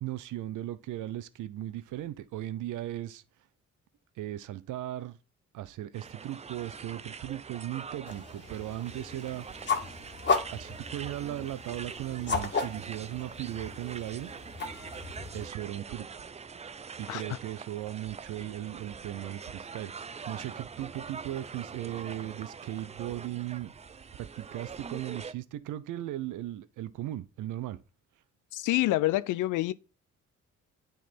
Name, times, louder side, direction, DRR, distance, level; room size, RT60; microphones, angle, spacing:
voice 1, 0.0-3.2 4.2-5.2 5.5-9.5 10.5-14.3 15.3-16.1 17.0-23.7 24.2-27.8, right 13 dB, 80° right, 0.8 m, -37 dB
sound 1, 5.9-25.3, right 5 dB, 20° right, 0.4 m, -44 dB
sound 2, 8.1-15.5, left 5 dB, 40° left, 1.7 m, -35 dB
voice 2, 28.5-29.7, left 16 dB, 90° left, 0.5 m, -27 dB
9.3 x 3.9 x 4.3 m
cardioid pair, 90°, 30 cm